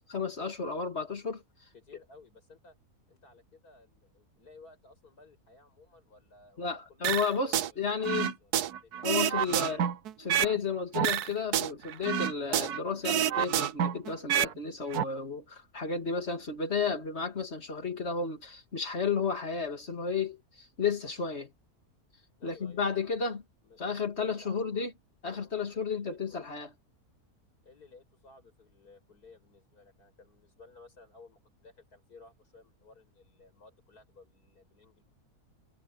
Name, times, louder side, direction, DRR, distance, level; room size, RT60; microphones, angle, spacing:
voice 1, 0.1-1.4 6.6-8.3 9.0-9.9 10.2-21.5 22.4-23.4 23.8-24.9 25.2-26.7, left 5 dB, 45° left, 2.5 m, -32 dB
voice 2, 1.7-2.8 3.1-9.0 22.4-23.2 23.6-23.8 24.2-24.9 25.2-26.4 27.6-35.0, left 3 dB, 75° left, 6.7 m, -57 dB
sound 1, 7.0-7.7 8.0-10.6 10.9-12.8 13.0-14.5 14.8-15.0, right 10 dB, 80° right, 1.4 m, -28 dB
omnidirectional pair, 1.6 m